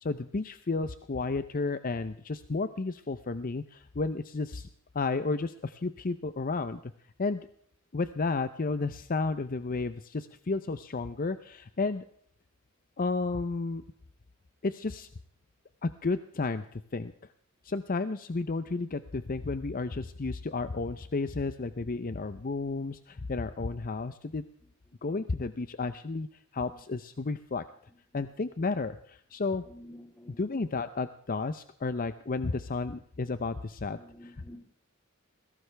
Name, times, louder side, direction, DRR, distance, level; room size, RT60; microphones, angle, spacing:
voice 1, 0.0-4.7 4.9-6.9 7.2-7.4 7.9-12.0 13.0-13.8 14.6-15.1 15.8-17.1 17.6-24.4 25.0-26.3 26.5-27.6 28.1-29.6 30.3-34.4, left 3 dB, 40° left, 12 dB, 0.6 m, -32 dB
voice 2, 29.7-30.4 33.9-34.6, left 1 dB, 10° left, 2 dB, 3.0 m, -50 dB
21.0 x 17.0 x 3.4 m, 0.62 s
head